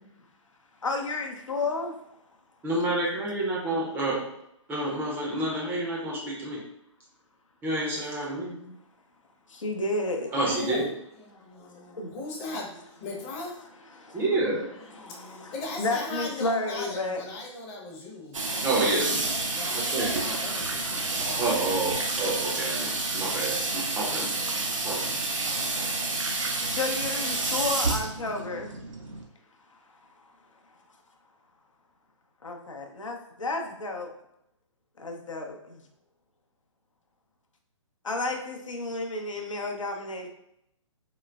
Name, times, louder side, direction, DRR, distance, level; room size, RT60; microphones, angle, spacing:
voice 1, 0.8-2.0 3.0-3.2 7.9-8.0 8.7-8.8 9.5-10.3 11.5-12.1 14.0-14.2 14.9-17.2 26.7-28.8 29.7-29.8 32.4-34.1 35.0-35.8 38.0-40.3, left 2 dB, 80° left, 2 dB, 0.6 m, -32 dB
voice 2, 2.6-4.3 4.7-6.6 7.6-8.7 10.3-10.9 14.1-14.7 18.6-19.4 19.9-20.1 21.4-24.3 24.8-25.2 25.6-25.9, right 2 dB, 10° right, -3 dB, 0.5 m, -29 dB
voice 3, 10.2-13.6 14.8-18.5 19.5-21.7, left 2 dB, 30° left, -1 dB, 0.7 m, -39 dB
Water tap faucet / Sink (filling or washing), 18.3-29.2, right 3 dB, 80° right, 0.6 m, -29 dB
3.8 x 2.0 x 2.3 m, 0.78 s
figure-of-eight pair, 130°, 16 cm